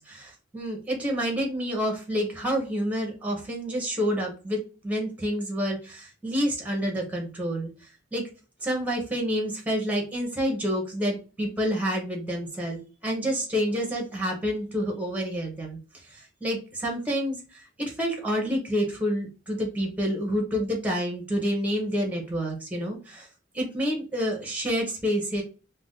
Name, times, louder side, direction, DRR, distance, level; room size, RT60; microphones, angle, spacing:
voice 1, 0.0-4.6 4.8-7.7 8.1-8.2 8.6-23.3 23.5-25.4, equal, 10° right, 1 dB, 0.6 m, -28 dB
2.5 x 2.1 x 3.7 m, 0.34 s
head